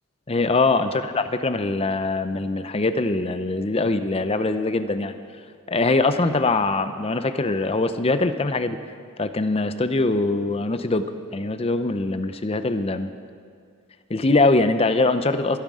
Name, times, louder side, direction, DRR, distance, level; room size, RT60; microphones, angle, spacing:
voice 1, 0.3-5.1 5.7-8.8 9.2-11.1 11.3-13.1 14.1-15.6, left 3 dB, 25° left, 10 dB, 0.6 m, -22 dB
24.5 x 9.2 x 4.9 m, 2.1 s
head